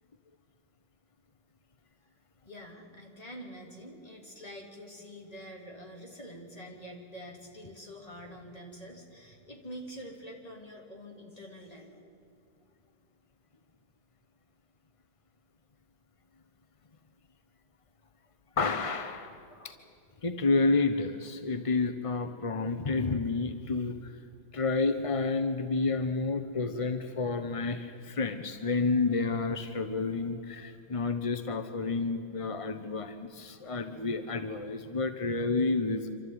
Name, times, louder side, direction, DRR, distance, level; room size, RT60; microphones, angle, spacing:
voice 1, 2.4-12.0, equal, 20° left, 0 dB, 3.1 m, -46 dB
voice 2, 18.6-19.7 20.2-24.2 24.5-36.1, left 3 dB, 40° left, 9 dB, 0.5 m, -30 dB
27.0 x 13.0 x 9.5 m, 2.6 s
omnidirectional pair, 1.9 m